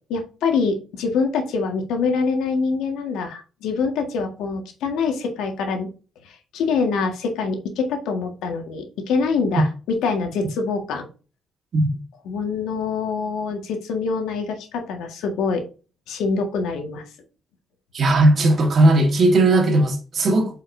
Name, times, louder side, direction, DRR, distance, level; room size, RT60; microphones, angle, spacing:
voice 1, 0.1-5.9 6.5-11.1 12.2-15.6 16.1-17.0, left 4 dB, 85° left, 1.8 m, -25 dB
voice 2, 17.9-20.6, right 2 dB, 55° right, 1.9 m, -17 dB
7.8 x 5.6 x 2.7 m
cardioid pair, 90°, 0 cm